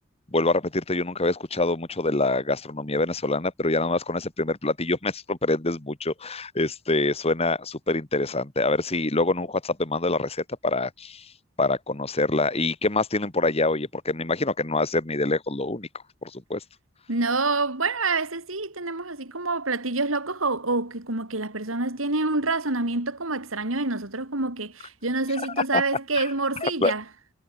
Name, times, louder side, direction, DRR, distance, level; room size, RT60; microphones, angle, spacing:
voice 1, 0.3-11.3 11.6-15.9 16.2-16.6 25.7-25.8 26.2-26.3 26.6-26.9, left 2 dB, 30° left, 1.7 m, -25 dB
voice 2, 17.1-27.0, right 3 dB, 85° right, 3.7 m, -27 dB
head